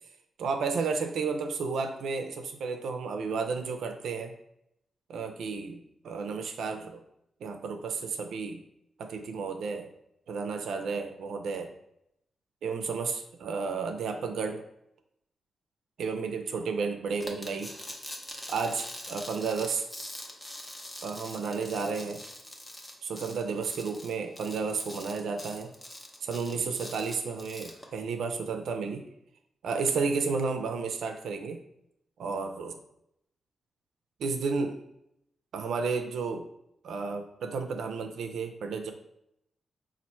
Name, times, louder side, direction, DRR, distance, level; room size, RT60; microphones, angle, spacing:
voice 1, 0.4-4.3 5.1-5.8 6.0-7.0 7.4-8.6 9.0-9.9 10.3-11.7 12.6-14.6 16.0-17.7 18.5-19.8 21.0-22.2 23.0-25.7 26.2-29.1 29.6-31.6 32.2-32.8 34.2-34.8 35.5-36.5 36.8-38.9, right 4 dB, 90° right, 4 dB, 0.4 m, -32 dB
sound 1, 17.2-27.8, left 1 dB, 15° left, 0.7 m, -44 dB
4.2 x 2.5 x 4.2 m, 0.78 s
cardioid pair, 100°, 0 cm